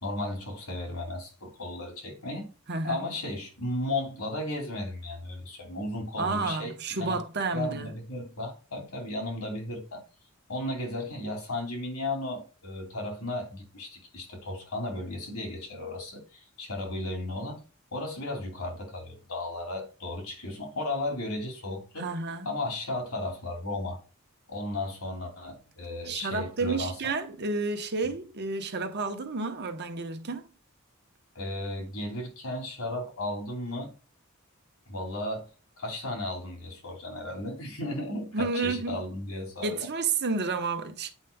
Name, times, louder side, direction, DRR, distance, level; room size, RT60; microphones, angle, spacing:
voice 1, 0.0-2.5 2.8-7.2 7.5-10.0 10.5-17.6 17.9-22.1 22.4-24.0 24.5-26.9 28.0-28.1 31.3-33.9 34.9-35.5 35.8-39.9, left 1 dB, 80° left, 2.7 m, -35 dB
voice 2, 2.7-3.0 6.2-7.9 22.0-22.5 26.1-30.4 38.3-39.0 39.6-41.1, right 3 dB, 50° right, 1.0 m, -30 dB
8.3 x 5.1 x 2.2 m
head